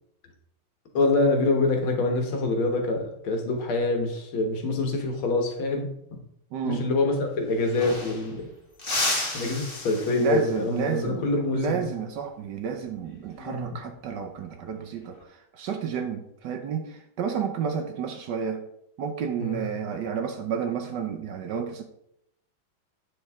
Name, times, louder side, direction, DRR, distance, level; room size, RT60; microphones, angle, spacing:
voice 1, 0.9-6.2 6.6-8.5 9.3-11.9 13.4-13.8 19.4-19.6, left 2 dB, 80° left, 3 dB, 2.1 m, -25 dB
voice 2, 6.5-6.9 10.2-18.6 19.0-21.9, right 7 dB, 65° right, 5 dB, 1.2 m, -31 dB
sound 1, 7.2-7.3 7.5-8.4 8.8-10.6 13.1-13.3 14.8-15.2, left 2 dB, 30° left, 1.5 m, -32 dB
8.4 x 6.3 x 3.6 m, 0.76 s
omnidirectional pair, 2.3 m